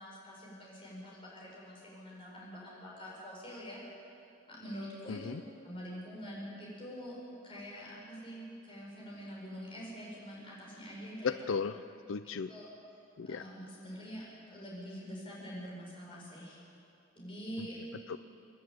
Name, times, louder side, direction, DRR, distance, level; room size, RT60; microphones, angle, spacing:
voice 1, 0.0-3.8 4.5-5.3 5.6-7.2 7.4-11.3 12.5-12.7 13.3-14.3 14.5-16.6 17.1-17.8, equal, 30° left, -5 dB, 6.9 m, -45 dB
voice 2, 5.1-5.4 11.2-11.8 12.1-12.5 13.2-13.4 17.6-17.7 18.1-18.2, left 5 dB, 90° left, 13 dB, 0.5 m, -35 dB
27.0 x 10.5 x 9.2 m, 2.8 s
head